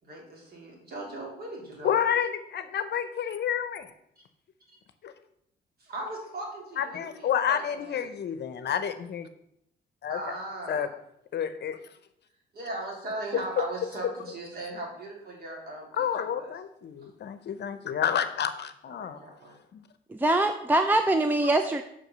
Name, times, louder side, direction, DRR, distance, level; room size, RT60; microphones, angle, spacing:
voice 1, 0.0-2.0 5.8-8.1 10.1-10.9 12.5-16.5 18.9-19.6, right 2 dB, 50° right, -2 dB, 3.3 m, -38 dB
voice 2, 1.8-3.9 5.0-5.1 6.8-9.3 10.0-10.2 10.7-10.9 11.3-11.8 15.9-19.2 19.7-19.8, left 8 dB, 60° left, 11 dB, 0.7 m, -29 dB
voice 3, 20.1-21.8, right 2 dB, 10° right, 7 dB, 0.5 m, -23 dB
5.9 x 4.8 x 6.6 m, 0.76 s
cardioid pair, 90°, 20 cm